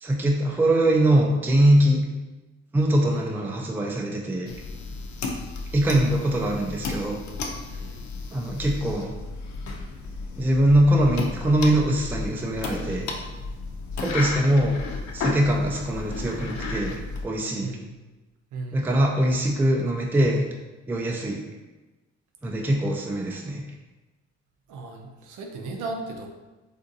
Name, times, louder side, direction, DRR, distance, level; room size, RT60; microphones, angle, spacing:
voice 1, 0.0-2.1 2.7-4.5 5.7-7.2 8.3-9.1 10.4-13.1 14.0-14.8 15.1-16.9 17.2-17.8 18.7-20.4 20.9-21.4 22.4-23.6, right 1 dB, 5° right, -1 dB, 0.4 m, -22 dB
sound 1, 4.5-17.2, left 3 dB, 70° left, 0.6 m, -33 dB
voice 2, 7.7-8.0 17.6-17.9 18.5-19.0 24.7-26.3, right 3 dB, 85° right, 2 dB, 0.6 m, -36 dB
3.7 x 2.5 x 2.6 m, 1.1 s
cardioid pair, 90°, 30 cm